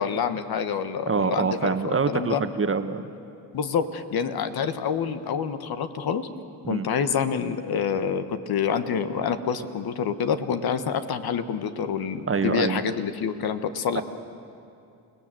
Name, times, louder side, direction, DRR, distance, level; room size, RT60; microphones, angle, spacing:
voice 1, 0.0-1.7 2.1-2.4 3.5-6.3 6.7-14.0, left 7 dB, 65° left, 10 dB, 1.4 m, -27 dB
voice 2, 1.1-3.1 6.6-6.9 12.3-12.8 13.9-14.0, right 5 dB, 30° right, 9 dB, 1.3 m, -25 dB
29.0 x 18.5 x 7.7 m, 2.6 s
cardioid pair, 80°, 40 cm